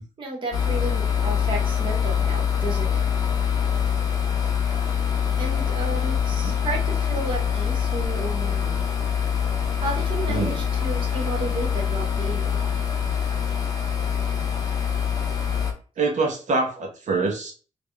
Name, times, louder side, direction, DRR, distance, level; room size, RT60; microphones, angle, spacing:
voice 1, 0.2-3.0 5.4-8.8 9.8-12.7, right 2 dB, 40° right, -1 dB, 0.8 m, -32 dB
sound 1, 0.5-15.7, left 8 dB, 30° left, 0.6 m, -24 dB
voice 2, 16.0-17.5, right 3 dB, 65° right, 1 dB, 0.9 m, -25 dB
3.3 x 2.6 x 3.2 m, 0.38 s
wide cardioid pair, 175°, 13 cm